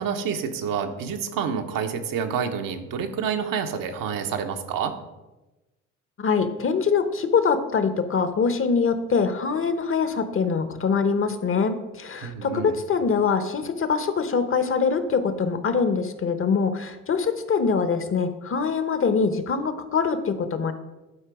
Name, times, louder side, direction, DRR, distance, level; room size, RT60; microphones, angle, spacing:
voice 1, 0.0-5.0 12.2-12.8, right 7 dB, 60° right, 6 dB, 1.1 m, -28 dB
voice 2, 6.2-20.7, left 5 dB, 35° left, 10 dB, 1.0 m, -24 dB
11.0 x 4.5 x 4.8 m, 1.1 s
hypercardioid pair, 65°, 38 cm